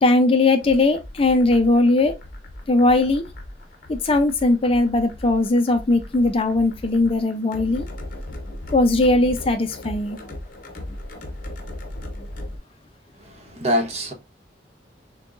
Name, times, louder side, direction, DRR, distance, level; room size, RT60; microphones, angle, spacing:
voice 1, 0.0-2.1 2.7-3.2 3.9-7.9 8.7-10.2, left 2 dB, 30° left, 0.4 m, -19 dB
sound 1, 0.6-12.6, left 1 dB, 50° left, 0.9 m, -37 dB
voice 2, 13.2-14.1, equal, 35° right, 1.0 m, -25 dB
6.5 x 2.3 x 2.4 m
head